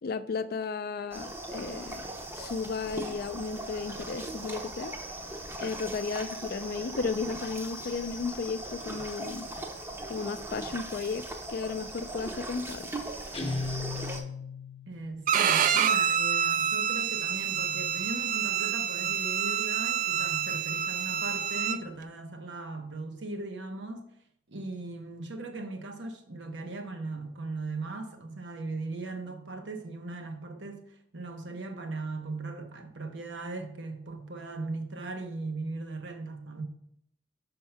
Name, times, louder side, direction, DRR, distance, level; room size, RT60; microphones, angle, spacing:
voice 1, 0.0-2.0 2.3-4.9 5.6-9.5 10.1-11.2 11.5-12.9, left 4 dB, 60° left, 0.4 m, -34 dB
sound 1, 1.1-14.2, right 1 dB, 15° right, 0.6 m, -39 dB
Guitar, 13.3-15.0, left 3 dB, 35° left, 0.8 m, -35 dB
voice 2, 14.9-24.1 24.5-36.6, right 3 dB, 85° right, 0.9 m, -38 dB
Bowed string instrument, 15.3-21.8, right 8 dB, 45° right, 0.3 m, -27 dB
5.6 x 3.6 x 5.6 m
head